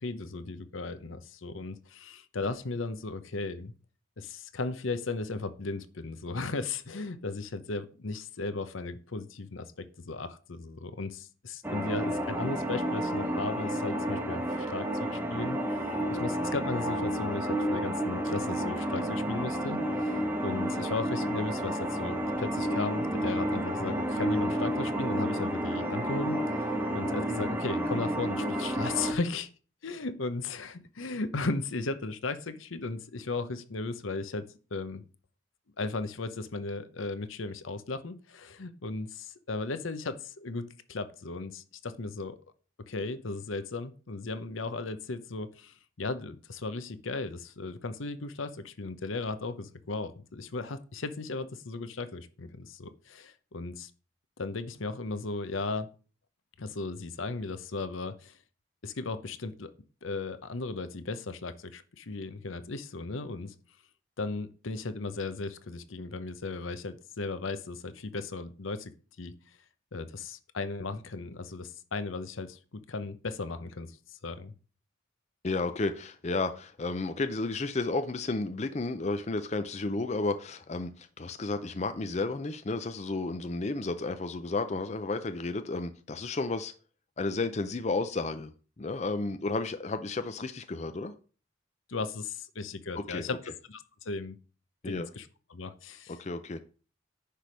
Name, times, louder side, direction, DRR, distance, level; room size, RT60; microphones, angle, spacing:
voice 1, 0.0-3.7 4.2-26.4 26.9-29.5 29.8-35.0 35.8-42.4 42.9-53.9 54.4-55.9 56.6-58.4 58.8-59.7 60.0-63.5 64.2-69.3 69.9-74.0 74.2-74.5 91.9-93.4 93.7-94.4 94.8-95.3 95.5-96.2, left 3 dB, 80° left, 0.8 m, -36 dB
sound 1, 11.6-29.1, equal, 10° right, 0.8 m, -31 dB
voice 2, 75.4-86.7 87.2-88.5 88.8-91.1 93.0-93.3 94.8-95.1 96.2-96.6, left 3 dB, 35° left, 0.5 m, -32 dB
10.0 x 3.4 x 6.2 m
head